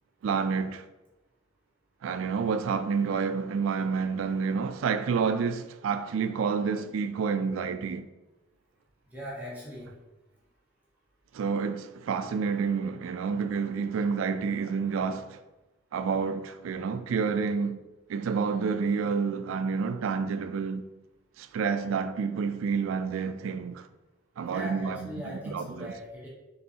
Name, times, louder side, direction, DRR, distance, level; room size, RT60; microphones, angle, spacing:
voice 1, 0.2-0.8 2.0-8.1 11.3-15.4 15.9-17.8 18.1-20.8 21.4-23.9 24.4-25.1 25.5-25.9, right 5 dB, 90° right, 0.3 m, -29 dB
voice 2, 9.1-9.9 11.3-11.4 24.4-26.3, equal, 10° right, 0.8 m, -40 dB
5.4 x 3.1 x 2.7 m
head